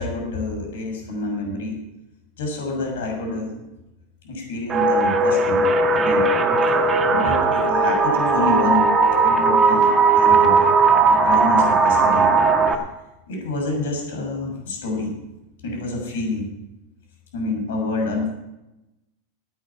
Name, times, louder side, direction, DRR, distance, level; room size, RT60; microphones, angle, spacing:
voice 1, 0.0-1.8 2.4-3.6 4.2-5.7 5.9-6.3 7.1-8.9 9.2-10.7 11.1-12.3 12.7-12.8 13.3-15.1 15.6-16.5 17.3-18.3, left 2 dB, 90° left, 1 dB, 6.5 m, -27 dB
sound 1, 4.7-12.7, right 3 dB, 15° right, 1.7 m, -17 dB
16.0 x 9.6 x 5.8 m, 0.93 s
supercardioid pair, 155°, 0 cm